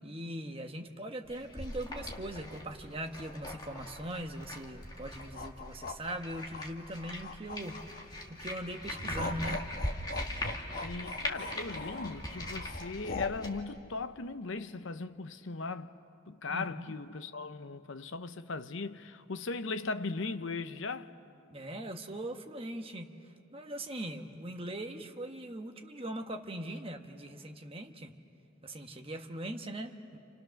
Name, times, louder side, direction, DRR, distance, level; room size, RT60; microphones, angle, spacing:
voice 1, 0.0-9.6 16.5-17.0 21.5-23.1 23.5-28.1 28.6-30.2, right 1 dB, 25° right, 1.2 m, -41 dB
sound 1, 1.3-13.6, left 1 dB, 20° left, 1.9 m, -41 dB
sound 2, 5.2-8.2 8.7-13.5, left 2 dB, 45° left, 1.3 m, -41 dB
voice 2, 10.8-16.0 16.3-21.1, left 3 dB, 60° left, 0.8 m, -38 dB
30.0 x 28.5 x 6.5 m
head